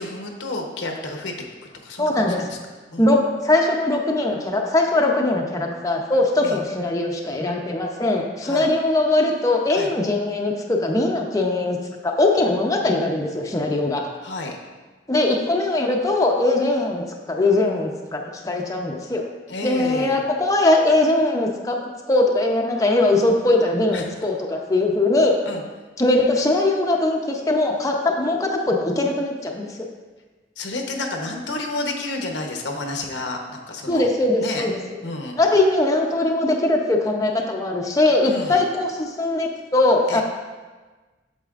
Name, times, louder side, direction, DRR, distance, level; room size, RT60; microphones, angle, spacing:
voice 1, 0.0-1.3 1.8-2.6 2.9-3.1 6.4-6.6 8.4-8.7 9.7-9.9 14.2-14.6 19.5-20.2 23.9-24.1 25.4-25.6 30.6-34.1 34.4-34.7 35.0-35.4 38.2-38.6 40.1-40.2, left 2 dB, 85° left, 2 dB, 0.9 m, -30 dB
voice 2, 2.0-2.4 3.0-11.8 12.0-14.0 15.1-19.2 19.6-21.8 22.1-25.4 26.0-29.8 33.9-34.8 35.4-40.2, left 2 dB, 20° left, 0 dB, 0.6 m, -21 dB
8.2 x 6.6 x 2.4 m, 1.3 s
head